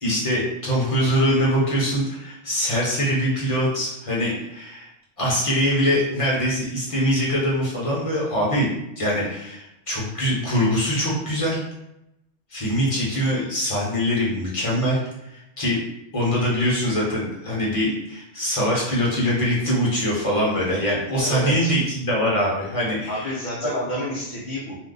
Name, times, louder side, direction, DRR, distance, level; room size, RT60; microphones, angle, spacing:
voice 1, 0.0-4.9 5.2-8.7 9.0-11.7 12.5-15.0 15.3-15.8 16.1-23.4 23.6-23.7, equal, 30° left, -5 dB, 1.0 m, -23 dB
voice 2, 21.2-21.7 23.1-24.8, equal, 50° left, -5 dB, 0.6 m, -29 dB
2.6 x 2.3 x 3.8 m, 0.87 s
omnidirectional pair, 1.2 m